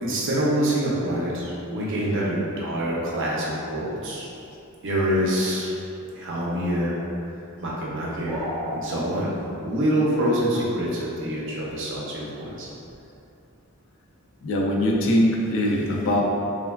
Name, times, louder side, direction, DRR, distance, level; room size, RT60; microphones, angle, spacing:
voice 1, 0.0-4.3 4.8-5.7 6.1-7.0 7.6-8.4 8.7-9.3 9.6-12.7, right 1 dB, 60° right, -5 dB, 0.6 m, -25 dB
sound 1, 8.3-8.8, equal, 5° right, 0.4 m, -31 dB
voice 2, 14.4-16.2, left 1 dB, 60° left, -1 dB, 0.4 m, -22 dB
3.3 x 2.2 x 2.2 m, 2.7 s
head